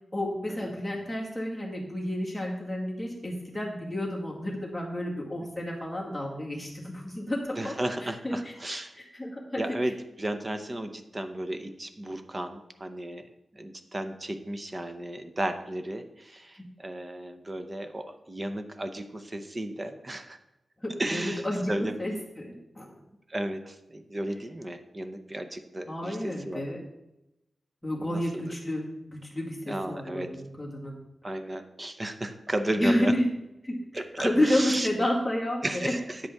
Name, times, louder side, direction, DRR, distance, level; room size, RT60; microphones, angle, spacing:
voice 1, 0.1-7.7 8.0-8.5 9.0-9.9 16.5-16.6 20.8-22.9 25.9-26.8 27.8-31.0 32.8-33.3 33.6-35.9, left 1 dB, 5° left, -3 dB, 1.8 m, -30 dB
voice 2, 7.6-8.9 9.6-13.3 13.5-20.4 21.0-21.9 23.3-26.6 28.0-28.5 29.7-30.3 31.2-33.1 33.9-34.9 35.6-36.2, right 1 dB, 20° right, 8 dB, 0.7 m, -34 dB
9.3 x 7.9 x 3.5 m, 0.92 s
wide cardioid pair, 160°, 0 cm